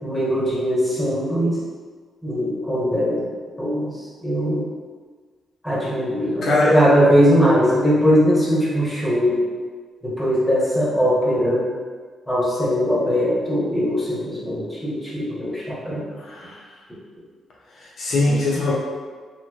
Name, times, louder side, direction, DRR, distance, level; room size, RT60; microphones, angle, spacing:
voice 1, 0.0-1.6 2.2-3.2 3.6-4.6 5.6-9.4 10.0-11.6 12.3-16.1, equal, 10° left, -7 dB, 1.1 m, -20 dB
voice 2, 6.4-6.8 16.2-16.6 17.8-18.7, left 2 dB, 65° left, -4 dB, 0.4 m, -21 dB
2.8 x 2.7 x 2.4 m, 1.5 s
cardioid pair, 70°, 0 cm